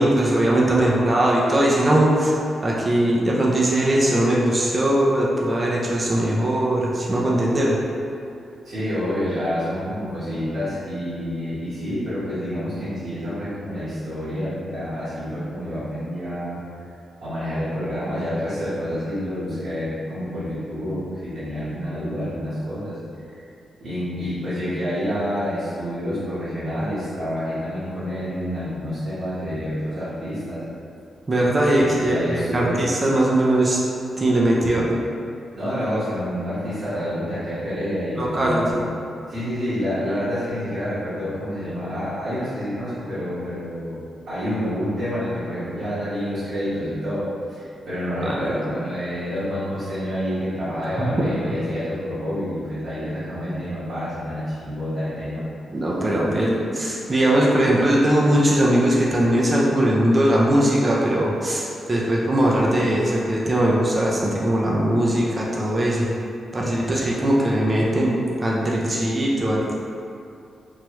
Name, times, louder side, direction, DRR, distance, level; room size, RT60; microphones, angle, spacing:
voice 1, 0.0-2.4 2.6-7.8 31.3-33.8 34.2-35.0 38.2-38.7 48.3-48.4 51.0-51.1 55.7-66.1 66.5-69.7, right 1 dB, 25° right, -4 dB, 0.4 m, -20 dB
voice 2, 8.6-16.6 17.2-23.0 23.3-23.4 23.8-30.6 31.8-32.8 35.5-44.0 44.3-55.5, equal, 65° right, -15 dB, 1.2 m, -28 dB
3.0 x 2.3 x 3.0 m, 2.5 s
cardioid pair, 115°, 0 cm